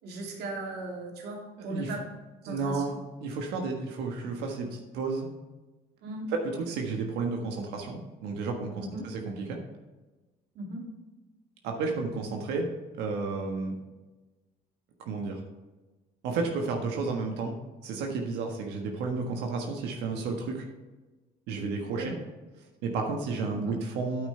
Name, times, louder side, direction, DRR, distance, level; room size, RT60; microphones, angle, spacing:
voice 1, 0.0-2.0 2.4-2.8 6.0-6.3 8.8-9.1 10.5-10.8 21.9-22.2 23.5-23.8, right 2 dB, 75° right, -1 dB, 2.8 m, -37 dB
voice 2, 1.6-1.9 2.5-5.3 6.7-9.6 11.6-12.7 13.0-13.7 15.0-15.4 16.2-17.5 17.8-20.7 21.5-22.2 22.8-24.3, right 4 dB, 90° right, 2 dB, 1.5 m, -32 dB
9.6 x 9.0 x 3.3 m, 1.2 s
cardioid pair, 110°, 17 cm